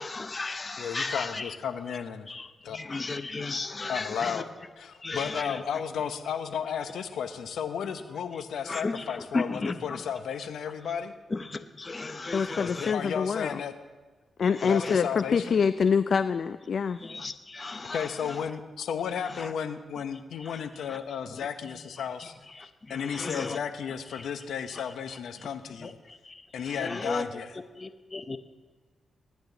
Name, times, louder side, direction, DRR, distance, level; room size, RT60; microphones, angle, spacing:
voice 1, 0.0-1.6 1.9-2.0 2.3-4.4 5.0-5.6 8.6-10.0 11.3-12.9 14.6-15.0 17.0-18.4 19.3-19.5 20.4-20.6 20.9-21.0 21.3-21.7 22.2-22.3 22.5-23.6 24.1-24.3 25.4-25.5 25.8-27.3 27.8-28.4, left 3 dB, 35° left, 10 dB, 0.9 m, -35 dB
voice 2, 0.8-2.3 2.6-2.8 3.9-4.5 4.8-11.1 12.6-13.7 14.6-15.6 17.9-22.3 22.6-25.9 26.5-27.5, left 7 dB, 80° left, 9 dB, 0.8 m, -34 dB
voice 3, 12.3-13.6 14.4-17.0, left 6 dB, 65° left, 12 dB, 0.4 m, -25 dB
17.0 x 10.5 x 4.0 m, 1.4 s
cardioid pair, 60°, 0 cm